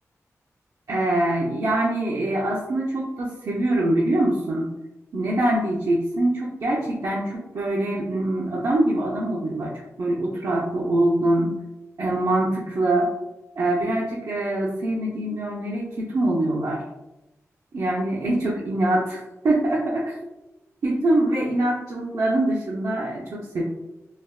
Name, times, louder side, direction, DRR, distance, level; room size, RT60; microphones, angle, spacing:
voice 1, 0.9-4.7 5.1-9.7 10.0-11.5 12.0-13.1 13.6-16.8 17.7-20.1 20.8-23.6, right 1 dB, 70° right, -5 dB, 0.5 m, -24 dB
3.2 x 2.0 x 2.3 m, 0.98 s
wide cardioid pair, 95°, 6 cm